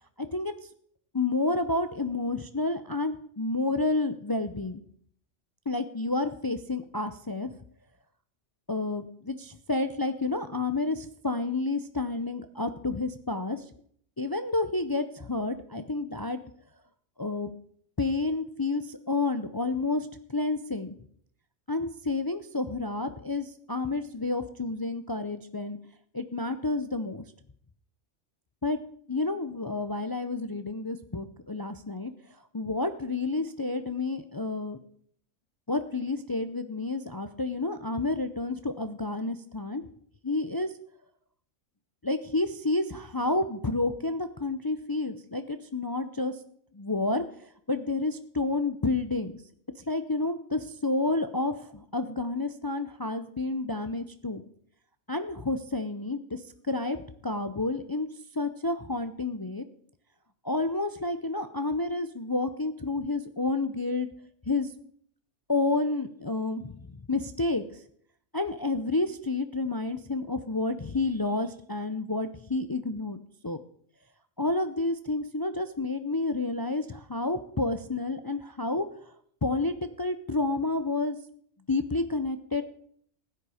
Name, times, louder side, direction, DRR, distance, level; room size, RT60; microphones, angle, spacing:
voice 1, 0.2-0.5 1.1-4.8 5.7-7.5 8.7-13.6 14.2-16.4 17.2-17.5 18.0-21.0 21.7-25.8 26.1-27.2 28.6-28.8 29.1-32.1 32.5-34.8 35.7-39.8 40.2-40.7 42.0-46.4 46.7-49.3 49.9-54.4 55.1-57.0 57.2-58.1 58.4-59.6 60.4-64.1 64.5-64.7 65.5-67.8 68.3-73.2 73.4-73.6 74.4-79.1 79.4-81.2 81.7-82.6, left 2 dB, 30° left, 10 dB, 0.4 m, -30 dB
15.5 x 9.9 x 4.9 m, 0.63 s
omnidirectional pair, 1.3 m